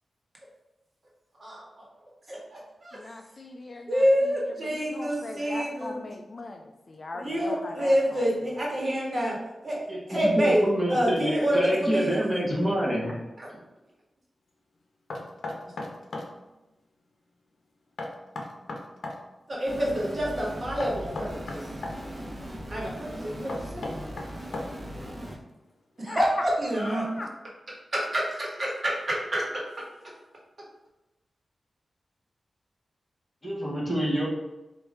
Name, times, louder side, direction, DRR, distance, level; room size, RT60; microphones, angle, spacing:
voice 1, 1.4-1.9 2.3-3.0 3.9-6.0 7.1-9.4 9.6-10.6 10.9-12.1 13.4-13.5 19.5-21.6 22.7-24.0 26.0-27.2 27.9-29.6, equal, 35° right, -4 dB, 1.3 m, -27 dB
voice 2, 2.9-4.1 4.7-8.6 26.1-26.4 26.7-27.3, left 2 dB, 45° left, 4 dB, 0.3 m, -39 dB
voice 3, 9.9-13.1 33.4-34.3, equal, 15° left, -5 dB, 1.4 m, -27 dB
Knock, 15.1-16.3 18.0-19.2 20.8-22.0 23.5-24.9, left 2 dB, 90° left, 0.6 m, -35 dB
sound 1, 19.7-25.4, equal, 20° right, 0.9 m, -39 dB
4.4 x 2.6 x 3.5 m, 1.0 s
wide cardioid pair, 90°, 0 cm